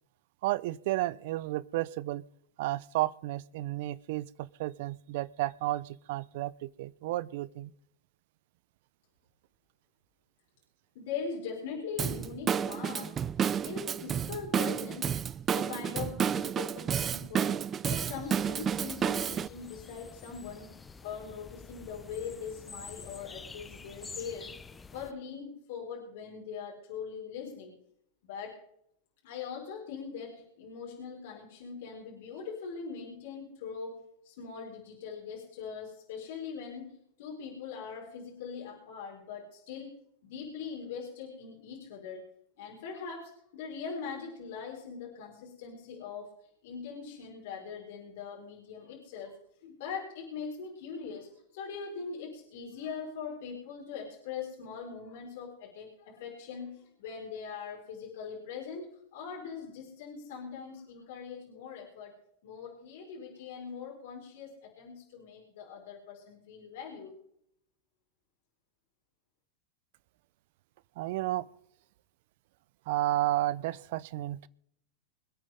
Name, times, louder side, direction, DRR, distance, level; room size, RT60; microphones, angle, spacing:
voice 1, 0.4-2.2 2.6-7.7 71.0-71.5 72.9-74.5, right 16 dB, 60° right, 19 dB, 0.7 m, -32 dB
voice 2, 10.9-15.2 15.5-20.7 21.0-24.5 24.9-27.7 28.2-28.6 29.2-36.9 37.2-39.9 40.2-46.3 46.6-62.1 62.4-67.1, left 6 dB, 65° left, -2 dB, 5.0 m, -41 dB
Drum kit / Drum, 12.0-19.5, right 8 dB, 25° right, 0.5 m, -31 dB
sound 1, 17.9-25.1, left 4 dB, 15° left, 0.8 m, -48 dB
25.0 x 9.1 x 3.7 m, 0.72 s
hypercardioid pair, 100°, 0 cm